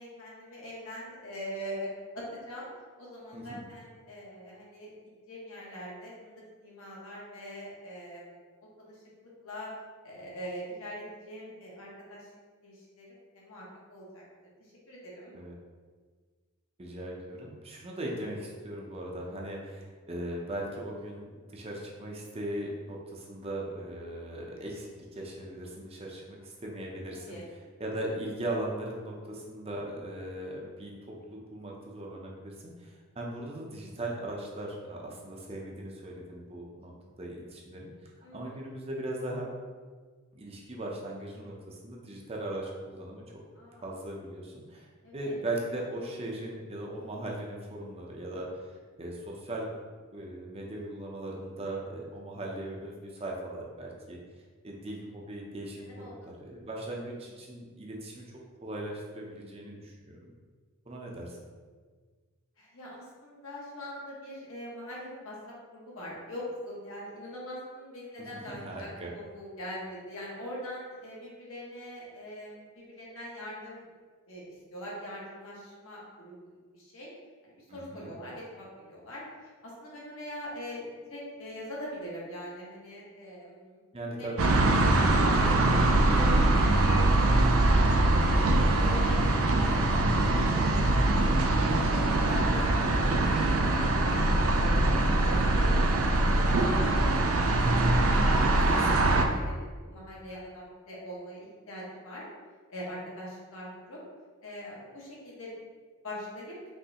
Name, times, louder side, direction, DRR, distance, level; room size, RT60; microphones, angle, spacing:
voice 1, 0.0-1.9 2.1-2.7 3.0-6.3 6.6-8.4 8.8-9.0 9.4-9.7 10.0-12.3 12.6-13.1 13.3-13.6 13.9-14.2 14.6-15.4 27.3-27.4 38.2-38.6 43.5-43.9 45.0-45.4 55.9-56.6 62.6-73.9 74.3-77.1 77.4-83.8 84.2-84.3 85.0-85.5 85.7-91.3 91.7-93.2 93.5-94.9 95.3-96.0 96.4-98.5 98.8-98.9 99.3-102.2 102.7-104.0 104.4-105.5 106.0-106.6, equal, 70° left, -5 dB, 1.4 m, -43 dB
voice 2, 16.8-27.4 27.8-30.9 31.3-36.9 37.2-39.5 40.3-43.4 43.8-44.9 45.1-49.7 50.1-54.2 54.6-60.3 60.9-61.4 68.5-69.1 77.7-78.1 83.9-84.5 98.4-99.3, right 1 dB, 25° right, -2 dB, 0.6 m, -39 dB
sound 1, 84.4-99.2, right 2 dB, 70° right, 0.5 m, -23 dB
5.4 x 3.2 x 2.9 m, 1.5 s
head